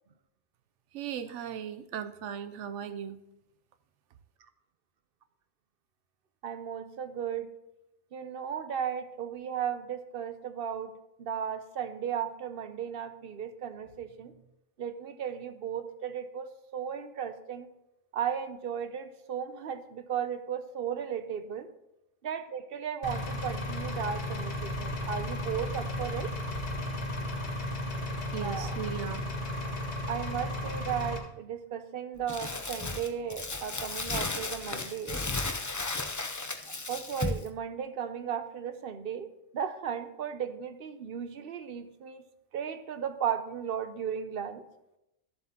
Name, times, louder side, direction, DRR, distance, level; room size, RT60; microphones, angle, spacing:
voice 1, 0.9-3.2 28.3-29.2, right 8 dB, 85° right, 10 dB, 0.9 m, -37 dB
voice 2, 6.4-7.5 8.1-10.9 11.2-14.3 14.8-17.7 18.1-21.7 22.2-26.3 28.4-28.7 30.1-35.2 36.7-42.2 42.5-44.6, right 8 dB, 60° right, 10 dB, 0.8 m, -35 dB
Engine, 23.0-31.2, left 1 dB, 70° left, 1.8 m, -34 dB
Crumpling crinkling, 32.3-37.5, left 3 dB, 25° left, 0.4 m, -34 dB
13.0 x 7.6 x 2.9 m, 0.88 s
omnidirectional pair, 1.2 m